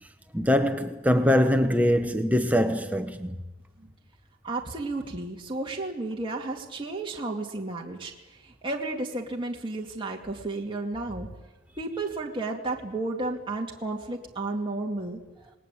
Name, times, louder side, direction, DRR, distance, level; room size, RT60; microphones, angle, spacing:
voice 1, 0.3-3.3, equal, 5° right, 0.9 m, -23 dB
voice 2, 4.4-11.3 11.8-15.2, right 2 dB, 25° right, 2.4 m, -32 dB
28.5 x 19.5 x 8.4 m
head